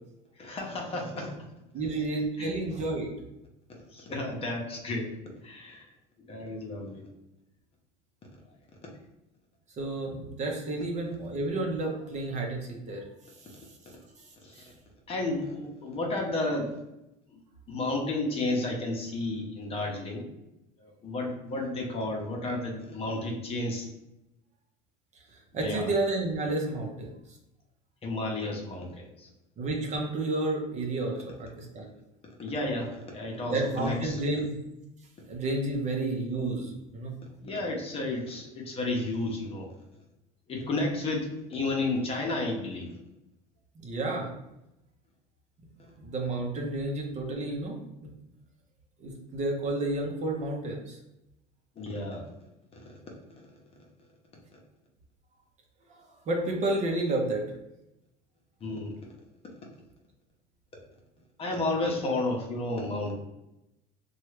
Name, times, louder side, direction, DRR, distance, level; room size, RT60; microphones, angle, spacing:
voice 1, 0.4-1.5 2.4-2.6 3.9-5.1 5.4-5.9 6.2-7.0 8.8-8.9 14.4-14.7 15.1-16.8 17.3-17.4 17.7-20.3 20.8-23.9 25.6-25.9 28.0-29.3 32.2-34.2 37.4-39.7 40.5-42.9 45.8-45.9 51.8-52.3 52.7-53.0 53.3-53.5 58.6-59.0 61.4-63.1, left 2 dB, 35° left, 0 dB, 0.8 m, -32 dB
voice 2, 1.7-3.1 9.8-13.0 25.3-27.1 29.6-31.9 33.5-34.6 35.3-37.1 43.8-44.3 46.0-48.1 49.0-51.0 56.3-57.4, right 2 dB, 40° right, 1 dB, 0.8 m, -31 dB
3.0 x 2.3 x 3.2 m, 0.89 s
supercardioid pair, 110°, 18 cm